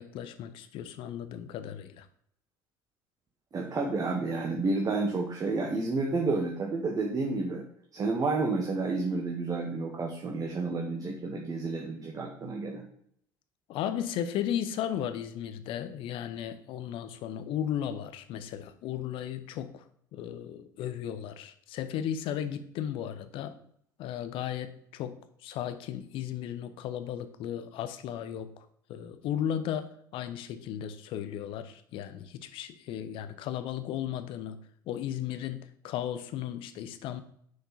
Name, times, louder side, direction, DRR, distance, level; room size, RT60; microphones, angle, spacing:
voice 1, 0.0-2.1 13.7-19.8 20.1-23.6 24.0-34.6 34.9-37.2, left 10 dB, 55° left, 11 dB, 0.7 m, -35 dB
voice 2, 3.5-7.6 7.9-12.9, right 3 dB, 35° right, 1 dB, 1.2 m, -30 dB
6.4 x 4.7 x 4.2 m, 0.67 s
hypercardioid pair, 65°, 10 cm